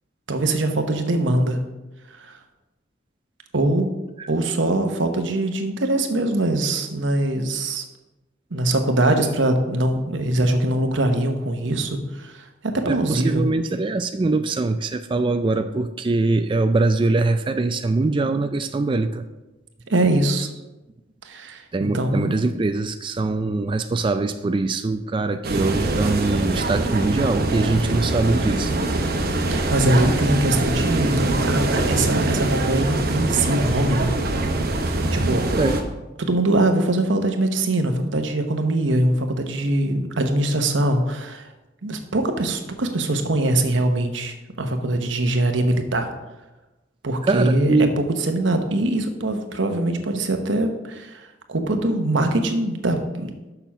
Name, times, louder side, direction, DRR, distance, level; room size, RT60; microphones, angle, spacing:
voice 1, 0.3-1.6 2.2-2.4 3.5-3.9 4.3-7.8 8.5-13.4 19.9-20.5 21.2-22.3 29.5-34.1 34.7-35.4 36.2-41.5 41.8-46.1 47.0-53.5, right 1 dB, 90° right, 5 dB, 1.0 m, -22 dB
voice 2, 12.8-19.2 21.7-28.7 35.6-35.8 47.3-47.9, right 3 dB, 25° right, 8 dB, 0.3 m, -22 dB
sound 1, 25.4-35.8, right 2 dB, 55° right, 1.0 m, -23 dB
6.8 x 5.8 x 5.9 m, 1.1 s
head